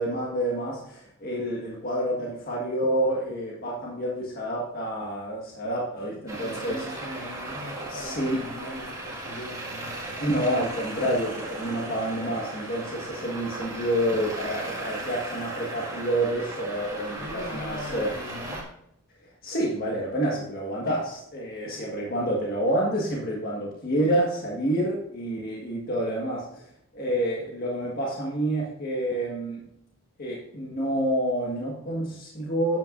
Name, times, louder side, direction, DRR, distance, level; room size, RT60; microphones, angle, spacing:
voice 1, 0.0-6.8 7.9-8.4 10.2-18.1 19.4-26.6 26.9-29.6 30.2-32.8, right 1 dB, 45° left, -3 dB, 1.6 m, -28 dB
voice 2, 6.3-10.3 17.1-18.7, left 1 dB, 85° left, -3 dB, 3.8 m, -40 dB
Traffic noise roadway noise, 6.3-18.6, right 2 dB, 15° right, 1.8 m, -36 dB
11.0 x 9.0 x 2.6 m, 0.76 s
head